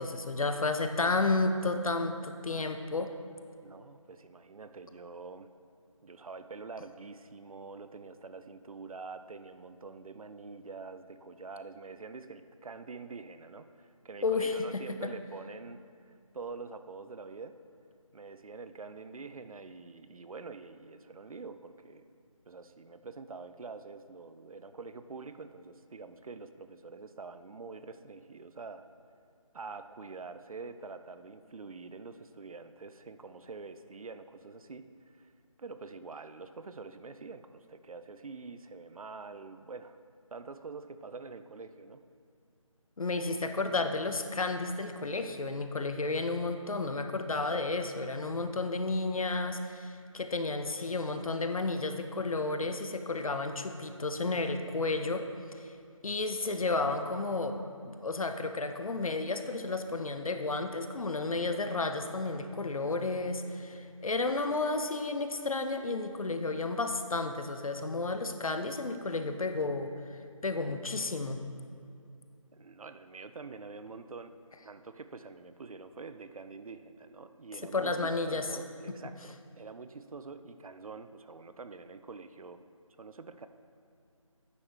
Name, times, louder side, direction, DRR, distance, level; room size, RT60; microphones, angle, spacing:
voice 1, 0.0-3.1 14.2-14.5 43.0-55.3 55.5-55.7 56.0-57.6 57.8-71.4 77.7-78.5, left 3 dB, 75° left, 7 dB, 0.7 m, -32 dB
voice 2, 3.6-5.5 6.0-15.8 16.1-17.6 18.1-22.1 22.5-28.9 29.5-35.3 35.6-40.0 40.3-42.0 72.5-74.3 74.6-82.6 83.0-83.5, right 4 dB, 80° right, 10 dB, 0.5 m, -46 dB
9.7 x 6.3 x 3.3 m, 2.4 s
figure-of-eight pair, 175°, 18 cm